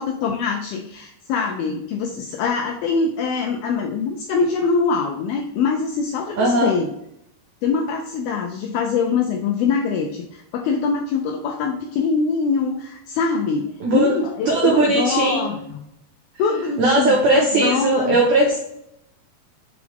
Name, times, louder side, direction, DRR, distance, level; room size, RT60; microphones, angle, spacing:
voice 1, 0.0-6.9 7.6-15.8 16.4-18.2, left 5 dB, 80° left, 2 dB, 2.2 m, -23 dB
voice 2, 6.4-6.7 13.8-14.2 14.5-15.5 16.8-18.6, right 2 dB, 85° right, -2 dB, 1.6 m, -18 dB
6.1 x 4.7 x 3.5 m, 0.81 s
omnidirectional pair, 4.8 m